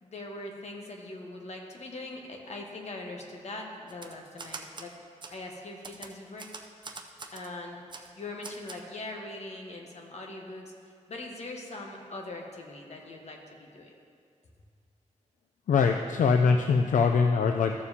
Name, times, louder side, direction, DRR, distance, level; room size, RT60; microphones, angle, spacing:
voice 1, 0.0-5.0 5.3-6.5 7.3-7.8 8.2-10.7 11.1-13.9, left 2 dB, 60° left, 0 dB, 1.1 m, -41 dB
Typewriter, 3.9-4.9 5.2-5.4 5.8-7.5 7.9-8.1 8.4-8.8, right 4 dB, 35° right, 0.5 m, -43 dB
voice 2, 15.7-17.7, left 5 dB, 80° left, 4 dB, 0.4 m, -23 dB
14.0 x 7.0 x 2.8 m, 2.3 s
wide cardioid pair, 160°, 13 cm